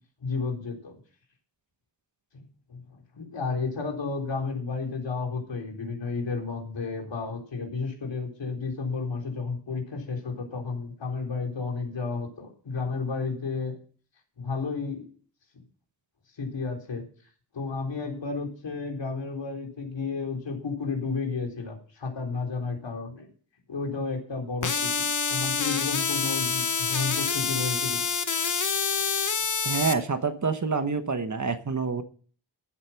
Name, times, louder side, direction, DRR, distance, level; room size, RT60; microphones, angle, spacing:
voice 1, 0.2-1.0 2.3-2.4 2.7-13.8 14.4-15.1 16.4-17.0 17.5-23.3 23.7-28.0, left 4 dB, 75° left, 1 dB, 4.1 m, -32 dB
sound 1, 24.6-29.9, left 5 dB, 45° left, 1.0 m, -27 dB
voice 2, 29.6-32.0, right 5 dB, 40° right, 9 dB, 1.2 m, -27 dB
15.0 x 8.1 x 5.9 m, 0.43 s
wide cardioid pair, 125°, 43 cm